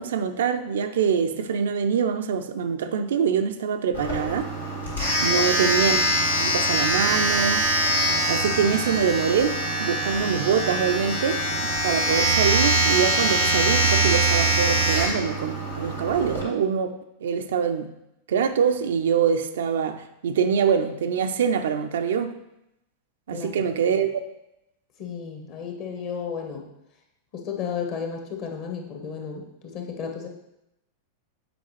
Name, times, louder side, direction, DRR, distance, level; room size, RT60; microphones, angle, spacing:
voice 1, 0.0-4.5 5.2-6.0 6.4-7.7 8.3-16.9 17.2-17.9 18.3-22.3 23.3-24.2, right 7 dB, 60° right, 8 dB, 0.4 m, -24 dB
Domestic sounds home sounds, 3.9-16.4, right 1 dB, 85° left, 2.3 m, -23 dB
voice 2, 23.3-23.6 25.0-26.6 27.3-30.3, left 6 dB, 45° left, 2 dB, 1.2 m, -33 dB
7.7 x 4.8 x 3.2 m, 0.86 s
figure-of-eight pair, 90°, 0 cm